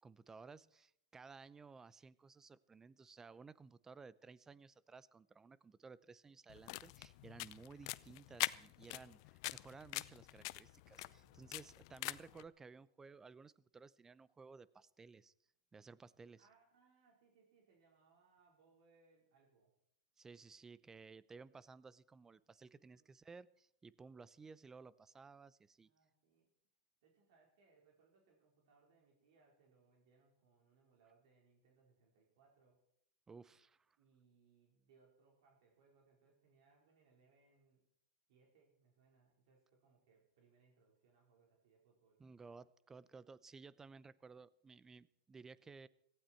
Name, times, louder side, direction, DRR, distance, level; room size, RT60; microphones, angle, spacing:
voice 1, 0.0-15.3 15.7-16.5 20.2-25.9 33.3-34.0 42.2-45.9, right 4 dB, 15° right, 20 dB, 0.6 m, -57 dB
sound 1, 6.5-12.4, left 21 dB, 55° left, 0.6 m, -44 dB
voice 2, 11.0-11.7 16.4-19.7 22.7-23.1 25.8-26.5 27.0-32.8 34.0-37.8 38.3-42.2, right 4 dB, 65° right, 0 dB, 4.5 m, -72 dB
17.5 x 15.5 x 4.5 m, 0.73 s
hypercardioid pair, 115°, 3 cm